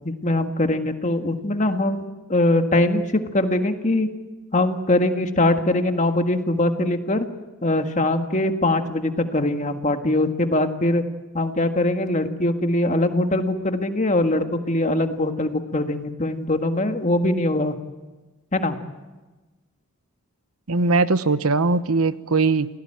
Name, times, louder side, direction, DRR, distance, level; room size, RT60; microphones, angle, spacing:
voice 1, 0.0-4.1 4.5-7.3 7.6-11.0 11.3-17.8 18.5-18.8, left 1 dB, 35° left, 7 dB, 1.7 m, -22 dB
voice 2, 20.7-22.7, right 3 dB, 90° right, 13 dB, 1.0 m, -20 dB
29.0 x 17.5 x 8.9 m, 1.2 s
head